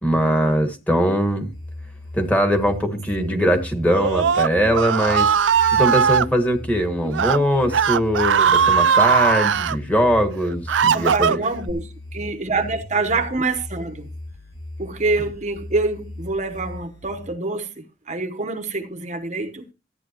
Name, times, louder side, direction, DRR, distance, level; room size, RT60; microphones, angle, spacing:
voice 1, 0.0-1.5 2.1-5.4 5.7-11.4, equal, 10° left, 1.8 m, -21 dB
sound 1, 1.3-17.3, left 1 dB, 80° left, 5.7 m, -38 dB
voice 2, 3.2-3.5 10.9-14.1 14.8-19.7, right 3 dB, 40° right, 1.0 m, -26 dB
Screaming, 3.9-6.3 7.0-7.4 7.7-9.8 10.3-11.7, right 7 dB, 85° right, 0.5 m, -19 dB
13.5 x 9.7 x 3.0 m
head